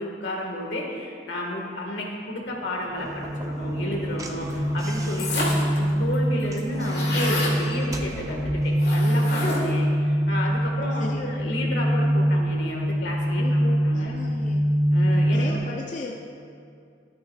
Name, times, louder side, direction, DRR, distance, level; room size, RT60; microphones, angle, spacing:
voice 1, 0.0-14.1 14.9-15.8, left 1 dB, 80° left, -1 dB, 1.6 m, -32 dB
sound 1, 2.8-15.6, equal, 75° right, 1.5 m, -24 dB
Slam / Knock, 3.0-8.8, right 1 dB, 20° right, 0.5 m, -40 dB
sound 2, 5.2-5.8 6.1-6.2 6.4-7.6 8.8-9.8, left 2 dB, 60° left, 2.0 m, -29 dB
voice 2, 10.9-11.3 13.4-14.6 15.3-16.2, left 3 dB, 45° left, -1 dB, 0.5 m, -36 dB
12.5 x 8.5 x 2.4 m, 2.4 s
head